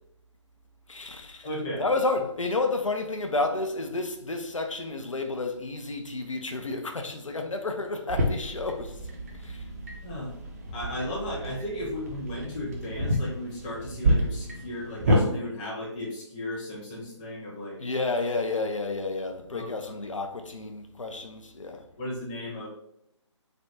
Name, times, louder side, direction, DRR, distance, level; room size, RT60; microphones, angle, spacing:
voice 1, 0.9-1.5 1.8-9.0 9.3-9.6 17.8-21.8, left 3 dB, 90° left, 0.4 m, -31 dB
voice 2, 1.4-1.8 10.0-10.3 10.7-17.8 19.5-20.0 22.0-22.7, left 1 dB, 15° left, 0.6 m, -35 dB
sound 1, 8.1-15.2, equal, 30° right, 0.5 m, -29 dB
3.3 x 2.1 x 2.7 m
figure-of-eight pair, 145°, 16 cm